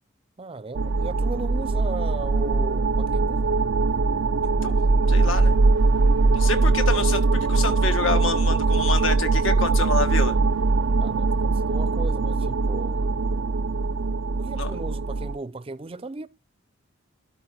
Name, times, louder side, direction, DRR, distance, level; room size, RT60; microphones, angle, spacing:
voice 1, 0.4-3.4 11.0-13.1 14.4-16.3, right 3 dB, 30° right, 0.5 m, -36 dB
sound 1, 0.7-15.4, right 3 dB, 70° right, 0.5 m, -21 dB
voice 2, 5.1-5.5 6.3-7.2 7.5-10.3 14.6-14.7, left 4 dB, 80° left, 1.6 m, -27 dB
12.0 x 4.3 x 5.9 m
head